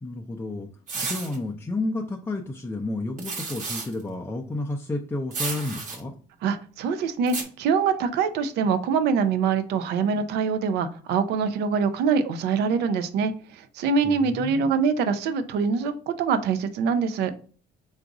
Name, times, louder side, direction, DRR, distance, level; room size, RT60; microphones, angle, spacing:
voice 1, 0.0-6.1 14.0-14.7, left 2 dB, 15° left, -1 dB, 0.5 m, -31 dB
sound 1, 0.9-1.4 3.2-3.9 5.3-6.0 7.3-7.4, right 4 dB, 50° right, 1.1 m, -32 dB
voice 2, 6.4-17.3, right 5 dB, 80° right, 10 dB, 0.5 m, -24 dB
3.9 x 2.5 x 4.7 m, 0.41 s
cardioid pair, 110°, 17 cm